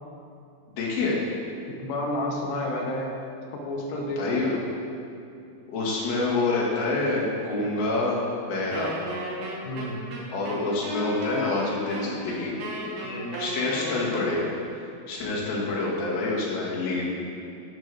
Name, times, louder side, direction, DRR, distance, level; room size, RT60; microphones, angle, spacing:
voice 1, 0.7-1.2 4.2-4.6 5.7-8.2 8.5-8.9 10.3-12.6 13.4-14.4 14.7-17.0, left 3 dB, 65° left, -5 dB, 3.3 m, -27 dB
voice 2, 1.7-3.2 3.5-4.7 9.6-10.0 13.0-13.4 15.2-15.5, left 1 dB, 80° left, -1 dB, 1.6 m, -31 dB
Wind instrument woodwind instrument, 8.7-14.5, right 1 dB, 65° right, 1.9 m, -35 dB
11.5 x 8.1 x 3.4 m, 2.6 s
omnidirectional pair, 4.9 m